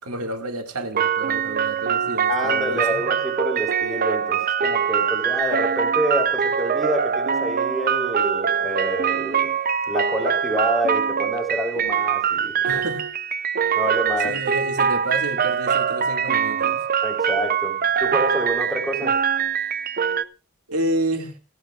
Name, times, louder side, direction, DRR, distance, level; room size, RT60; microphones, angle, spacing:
voice 1, 0.0-3.1 12.6-13.1 14.2-16.8 20.7-21.4, right 1 dB, 90° right, 2.2 m, -29 dB
sound 1, 0.9-20.2, right 7 dB, 40° right, 0.6 m, -23 dB
voice 2, 2.3-9.5 9.9-12.8 13.7-14.3 17.0-19.2, equal, ahead, 3.7 m, -27 dB
28.0 x 9.6 x 2.4 m
head